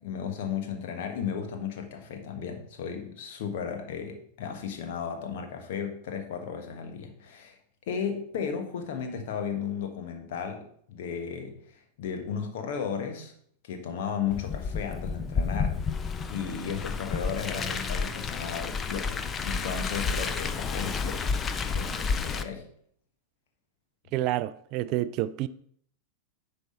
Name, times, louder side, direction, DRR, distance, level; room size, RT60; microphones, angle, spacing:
voice 1, 0.0-7.6 7.9-13.3 13.6-15.9 16.2-22.6, left 7 dB, 55° left, 1.3 m, -35 dB
Car, 14.3-22.4, left 5 dB, 20° left, 0.6 m, -31 dB
voice 2, 24.1-25.5, right 14 dB, 40° right, 0.3 m, -28 dB
10.0 x 3.5 x 5.4 m
figure-of-eight pair, 90°, 0 cm